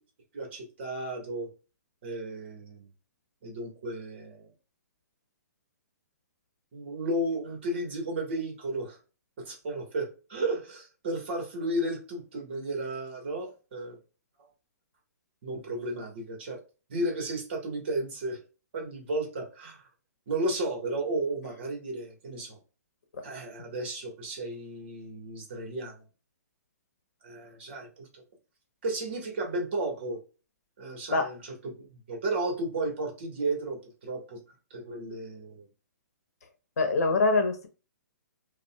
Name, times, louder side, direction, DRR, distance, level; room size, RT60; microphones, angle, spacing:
voice 1, 0.3-1.5 2.0-2.9 3.4-4.5 6.7-9.0 9.4-14.0 15.4-16.6 16.9-18.4 18.7-19.8 20.3-22.6 23.2-26.0 27.2-28.2 28.8-30.2 30.8-34.4 34.7-35.6, right 2 dB, 40° right, 1.5 m, -33 dB
voice 2, 36.8-37.7, left 3 dB, 65° left, 0.9 m, -24 dB
5.3 x 2.5 x 2.3 m
hypercardioid pair, 175°, 9 cm